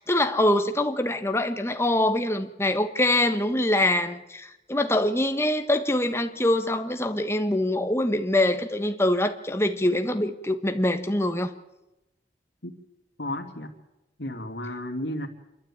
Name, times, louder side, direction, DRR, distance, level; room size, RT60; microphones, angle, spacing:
voice 1, 0.0-11.5, left 1 dB, 15° left, 8 dB, 1.3 m, -24 dB
voice 2, 13.2-13.7 14.2-15.3, left 1 dB, 90° left, 2 dB, 2.7 m, -33 dB
27.5 x 12.0 x 8.8 m, 0.97 s
head